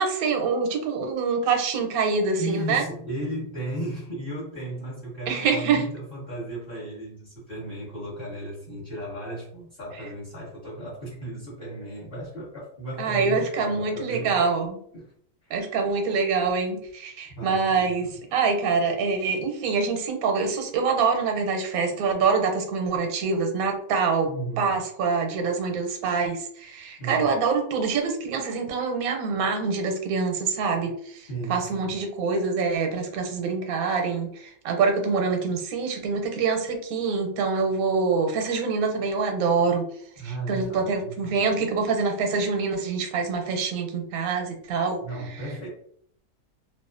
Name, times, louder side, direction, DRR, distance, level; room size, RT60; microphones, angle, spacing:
voice 1, 0.0-2.8 5.3-5.8 13.0-14.8 15.5-39.9 40.2-45.0, right 4 dB, 80° right, 4 dB, 1.0 m, -25 dB
voice 2, 2.4-14.4 14.9-15.1 15.4-15.5 17.4-18.2 24.3-24.7 27.0-27.4 31.3-32.0 40.2-41.5 45.0-45.7, right 1 dB, 45° left, -7 dB, 0.9 m, -35 dB
2.5 x 2.3 x 2.4 m, 0.65 s
omnidirectional pair, 1.5 m